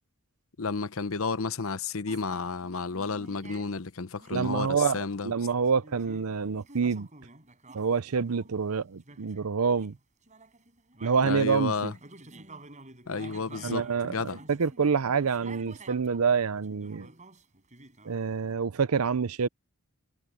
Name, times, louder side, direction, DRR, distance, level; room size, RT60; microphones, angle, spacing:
voice 1, 0.6-5.3 11.2-11.9 13.1-14.4, left 4 dB, 70° left, 0.9 m, -32 dB
sound 1, 2.1-3.8 4.2-4.5 5.6-8.5 9.0-10.0 10.3-16.3 16.5-18.5, right 2 dB, 35° right, 7.7 m, -50 dB
voice 2, 4.3-7.1 7.7-10.0 11.0-11.9 13.6-14.2 14.5-17.1 18.1-19.5, right 5 dB, 85° right, 0.6 m, -27 dB
head